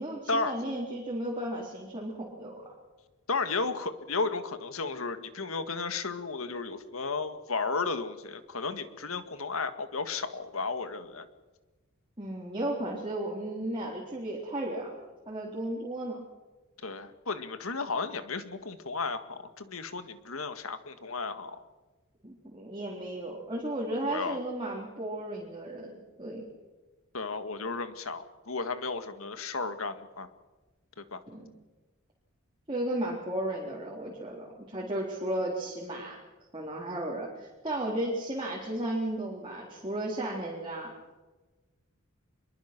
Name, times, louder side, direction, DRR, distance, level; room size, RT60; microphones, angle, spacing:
voice 1, 0.0-2.6 12.2-14.9 15.3-16.2 22.2-26.4 31.3-31.4 32.7-36.2 36.5-40.9, right 1 dB, 25° right, -3 dB, 3.7 m, -34 dB
voice 2, 3.3-11.2 16.8-21.6 24.1-24.4 27.1-30.3 31.0-31.2, left 4 dB, 80° left, 10 dB, 1.8 m, -34 dB
26.0 x 22.5 x 6.1 m, 1.2 s
head